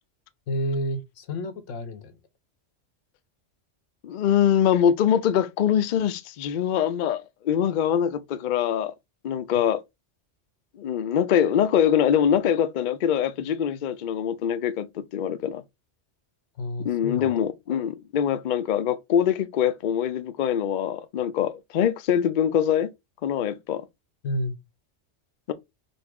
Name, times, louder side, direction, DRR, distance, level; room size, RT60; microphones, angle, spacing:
voice 1, 0.5-2.2 16.6-17.3 24.2-24.6, equal, 90° left, 1.2 m, -30 dB
voice 2, 4.0-8.9 9.2-9.8 10.8-15.6 16.8-22.9 23.2-23.9 25.5-25.6, left 9 dB, 55° left, 0.5 m, -23 dB
4.0 x 2.6 x 4.6 m
omnidirectional pair, 1.3 m